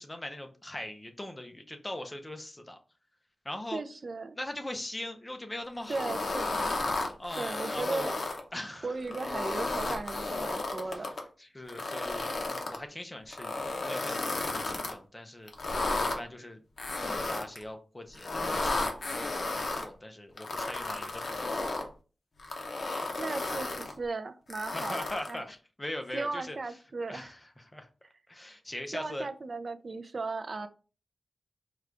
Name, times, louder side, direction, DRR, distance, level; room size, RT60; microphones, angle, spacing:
voice 1, 0.0-2.8 3.4-3.8 4.4-6.1 7.2-8.1 8.5-8.9 10.8-11.1 11.4-15.5 16.0-16.6 16.9-21.5 24.7-26.6 27.1-27.9 28.3-29.3, left 1 dB, 15° left, 5 dB, 0.5 m, -41 dB
voice 2, 3.7-4.4 5.9-6.8 7.3-8.2 8.8-11.1 23.2-25.4 26.1-27.3 28.9-30.7, right 3 dB, 40° right, 10 dB, 0.3 m, -36 dB
sound 1, 5.8-8.4 9.0-11.2 11.7-12.8 13.3-14.9 15.5-16.2 16.8-17.6 18.1-19.8 20.4-21.9 22.4-23.9 24.5-25.4, left 2 dB, 50° left, 0.7 m, -33 dB
4.7 x 2.2 x 3.7 m, 0.36 s
wide cardioid pair, 155°, 0 cm